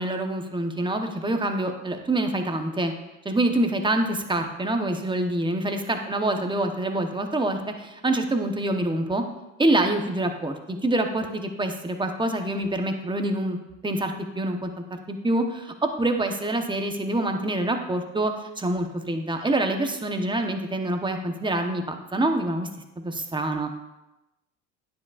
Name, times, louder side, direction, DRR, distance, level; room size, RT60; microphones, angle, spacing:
voice 1, 0.0-2.9 3.2-9.2 9.6-13.6 13.8-14.7 15.1-22.7 23.0-23.7, right 1 dB, 10° right, 5 dB, 1.0 m, -26 dB
9.5 x 8.4 x 2.5 m, 0.99 s
hypercardioid pair, 80°, 39 cm